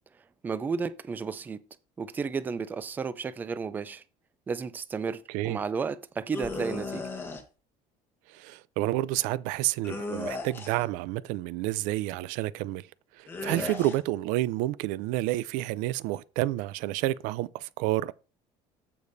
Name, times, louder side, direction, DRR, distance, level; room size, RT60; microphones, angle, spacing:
voice 1, 0.4-1.6 2.0-4.0 4.5-7.1 13.5-13.6, right 5 dB, 15° right, 0.3 m, -33 dB
voice 2, 5.3-5.6 8.3-12.9 13.2-18.1, right 16 dB, 90° right, 0.4 m, -29 dB
sound 1, 6.3-7.4 9.8-10.9 13.3-14.0, left 3 dB, 15° left, 1.0 m, -35 dB
14.5 x 5.1 x 2.6 m
cardioid pair, 175°, 13 cm